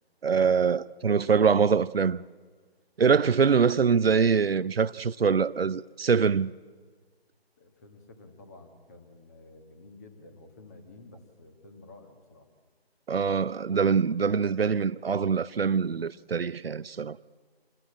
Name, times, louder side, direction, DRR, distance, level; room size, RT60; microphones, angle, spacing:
voice 1, 0.2-2.2 3.0-6.5 13.1-17.2, right 6 dB, 65° right, 0.6 m, -24 dB
voice 2, 7.6-12.5, left 2 dB, 15° left, 1.4 m, -51 dB
27.0 x 19.5 x 8.7 m
figure-of-eight pair, 160°, 32 cm